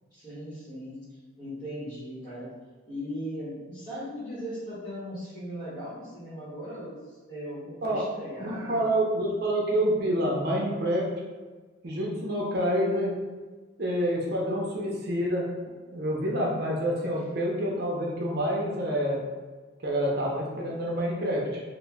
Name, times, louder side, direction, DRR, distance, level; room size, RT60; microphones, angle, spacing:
voice 1, 0.1-1.0 1.4-2.5 2.9-8.9, equal, 20° left, -10 dB, 0.9 m, -38 dB
voice 2, 8.4-11.1 11.8-13.1 13.8-15.5 15.9-19.2 19.8-21.6, equal, 50° right, -2 dB, 0.7 m, -27 dB
3.0 x 2.0 x 3.4 m, 1.4 s
head